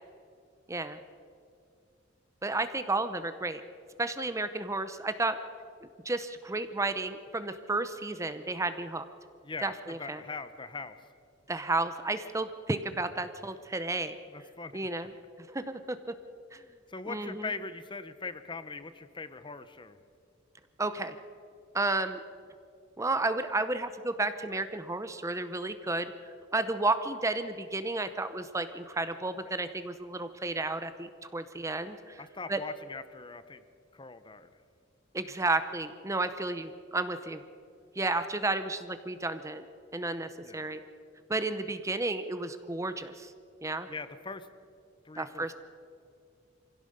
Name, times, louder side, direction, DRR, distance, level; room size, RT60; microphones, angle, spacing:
voice 1, 0.7-1.0 2.4-3.6 4.0-5.4 5.8-9.1 9.6-10.2 11.5-14.2 14.7-15.1 15.4-16.0 16.5-16.6 17.1-17.5 20.8-21.2 21.7-22.2 23.0-26.1 26.5-32.2 32.5-32.6 35.1-37.4 38.0-39.6 39.9-40.8 41.3-43.3 43.6-43.9 45.2-45.5, right 2 dB, 15° right, 11 dB, 0.7 m, -32 dB
voice 2, 9.4-11.0 14.3-14.9 16.9-20.0 32.2-33.6 33.9-34.5 40.4-40.7 43.9-44.5 45.0-45.5, left 4 dB, 25° left, 12 dB, 0.9 m, -41 dB
24.5 x 16.5 x 6.7 m, 2.4 s
head